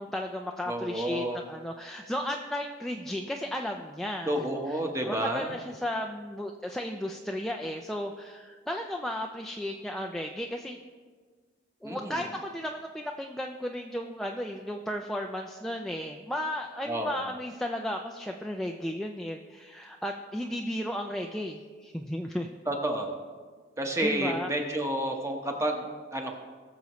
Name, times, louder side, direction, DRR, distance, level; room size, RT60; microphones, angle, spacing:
voice 1, 0.0-4.8 5.1-10.8 11.8-22.5 24.0-24.5, left 1 dB, ahead, 2 dB, 0.4 m, -34 dB
voice 2, 0.7-1.4 4.3-5.5 11.8-12.2 16.9-17.1 22.7-23.1 23.8-26.3, right 1 dB, 15° right, 2 dB, 1.1 m, -30 dB
20.0 x 6.9 x 3.1 m, 1.5 s
head